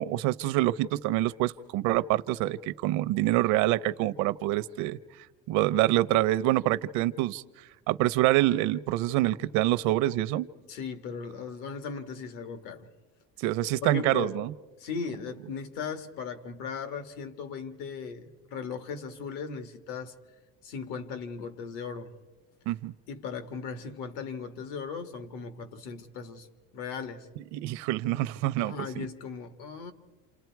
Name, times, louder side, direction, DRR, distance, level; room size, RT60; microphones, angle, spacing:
voice 1, 0.0-5.0 5.5-7.4 7.9-10.5 13.4-14.5 22.7-22.9 27.5-29.0, right 15 dB, 65° right, 0.7 m, -26 dB
voice 2, 10.7-12.9 13.8-14.3 14.8-20.2 20.6-22.1 23.1-26.5 26.7-27.3 28.6-29.9, left 5 dB, 85° left, 1.8 m, -37 dB
28.5 x 28.0 x 4.6 m
cardioid pair, 180°, 31 cm